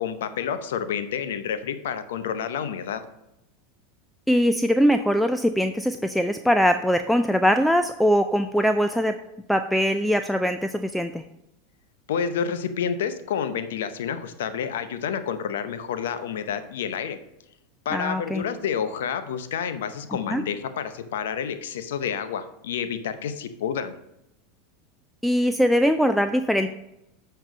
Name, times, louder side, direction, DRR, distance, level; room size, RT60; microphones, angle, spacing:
voice 1, 0.0-3.0 12.1-17.2 17.8-24.0, left 7 dB, 80° left, 10 dB, 0.7 m, -29 dB
voice 2, 4.3-9.2 9.5-11.2 17.9-18.4 20.3-20.4 25.2-26.7, equal, ahead, 8 dB, 0.4 m, -21 dB
7.9 x 4.4 x 5.2 m, 0.86 s
hypercardioid pair, 100°, 0 cm